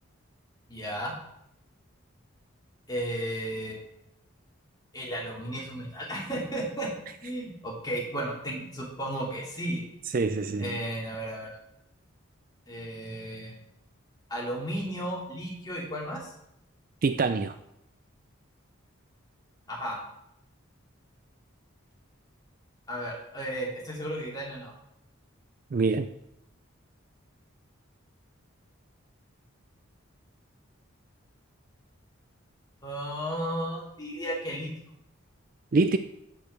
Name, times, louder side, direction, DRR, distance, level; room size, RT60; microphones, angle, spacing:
voice 1, 0.7-1.1 2.9-3.9 4.9-6.9 7.2-9.8 10.6-11.6 12.7-13.6 14.3-16.3 19.7-20.0 22.9-24.7 32.8-34.7, right 1 dB, 20° left, -4 dB, 2.6 m, -34 dB
voice 2, 10.1-10.8 17.0-17.6 25.7-26.1 35.7-36.0, right 3 dB, 40° right, 10 dB, 0.4 m, -25 dB
7.9 x 6.7 x 6.6 m, 0.80 s
head